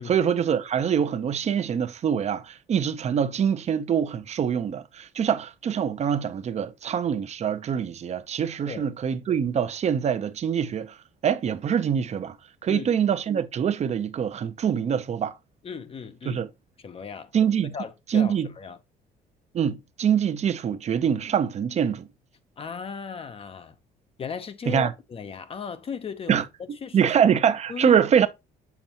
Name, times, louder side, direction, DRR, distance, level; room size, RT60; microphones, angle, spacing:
voice 1, 0.0-10.9 11.2-12.3 12.6-15.3 16.3-16.5 17.3-17.7 18.1-18.5 19.5-22.1 24.7-24.9 26.3-26.4 26.9-28.3, right 8 dB, 40° right, 0.7 m, -24 dB
voice 2, 15.6-16.4 16.8-17.3 17.7-18.8 22.6-23.8 24.2-27.1 27.7-28.0, left 6 dB, 35° left, 0.7 m, -36 dB
7.1 x 5.2 x 2.9 m
cardioid pair, 110°, 17 cm